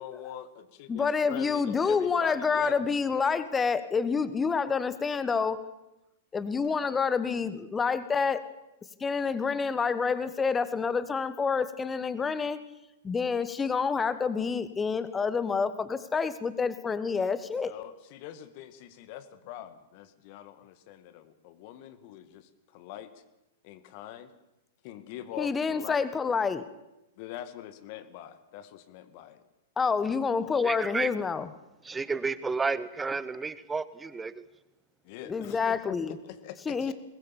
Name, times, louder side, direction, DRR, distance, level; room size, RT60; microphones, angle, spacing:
voice 1, 0.0-2.8 17.6-23.2 23.6-24.3 24.8-26.0 27.2-29.4 35.0-36.9, left 12 dB, 45° left, 1.9 m, -43 dB
voice 2, 0.9-5.6 6.3-8.4 9.0-12.6 13.0-17.7 25.4-26.6 29.8-31.5 35.2-36.2 36.6-36.9, left 5 dB, 15° left, 1.4 m, -28 dB
voice 3, 30.5-31.1 31.8-34.4, right 4 dB, 10° right, 1.1 m, -31 dB
22.0 x 20.0 x 7.2 m
figure-of-eight pair, 100°, 0 cm